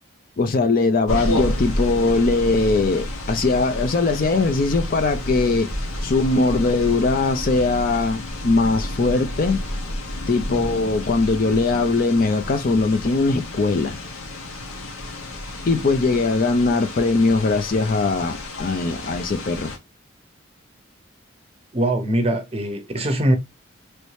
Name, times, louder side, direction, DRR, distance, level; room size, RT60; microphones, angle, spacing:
voice 1, 0.4-5.7 6.0-9.6 10.3-14.0 15.7-19.7, left 3 dB, 45° left, 0.4 m, -20 dB
sound 1, 1.1-19.8, left 1 dB, 90° left, 1.0 m, -30 dB
voice 2, 21.7-23.4, right 1 dB, 30° right, 0.6 m, -22 dB
3.1 x 2.7 x 3.1 m
head